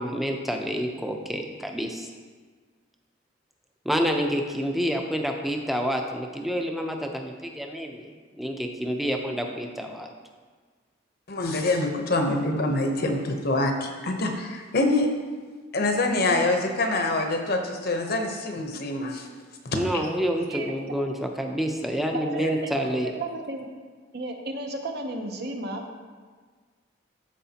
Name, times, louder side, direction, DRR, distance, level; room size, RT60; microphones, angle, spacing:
voice 1, 0.0-2.1 3.8-8.1 8.4-10.1 19.7-23.1, equal, ahead, 2 dB, 0.6 m, -28 dB
voice 2, 11.3-15.1 15.7-19.3 19.6-20.1 22.4-22.5, left 2 dB, 50° left, 4 dB, 0.8 m, -25 dB
voice 3, 22.1-23.7 24.1-25.9, right 2 dB, 55° right, 3 dB, 0.8 m, -33 dB
13.5 x 4.7 x 2.9 m, 1.5 s
head